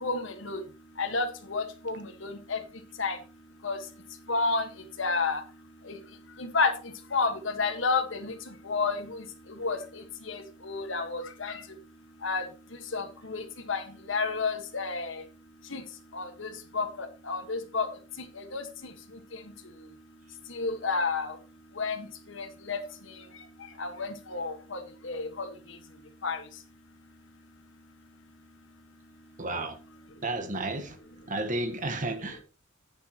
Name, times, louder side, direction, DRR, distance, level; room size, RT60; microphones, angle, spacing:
voice 1, 0.0-0.6 1.0-2.6 3.0-3.2 3.6-3.8 4.3-4.6 5.0-5.4 6.4-6.7 7.1-8.3 8.7-9.2 9.6-9.8 10.3-11.6 12.2-12.4 12.9-13.4 13.7-13.8 14.1-15.2 15.7-15.8 16.1-17.9 18.4-18.6 20.5-21.3 21.8-22.0 22.4-22.8 23.8-25.5 26.2-26.4, left 4 dB, 65° left, 1.5 m, -30 dB
voice 2, 29.4-29.8 30.2-31.0 31.3-32.4, right 2 dB, 40° right, 1.4 m, -32 dB
10.5 x 9.4 x 3.0 m
head